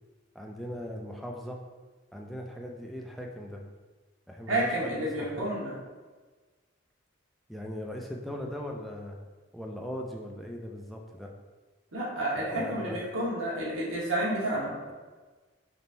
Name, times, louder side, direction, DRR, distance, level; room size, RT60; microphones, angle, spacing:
voice 1, 0.3-1.6 2.1-3.6 4.3-5.4 7.5-9.2 9.5-11.3 12.5-13.0, equal, ahead, 0 dB, 0.3 m, -39 dB
voice 2, 4.5-5.7 11.9-14.7, right 1 dB, 85° right, -5 dB, 1.2 m, -30 dB
4.1 x 3.6 x 2.6 m, 1.3 s
head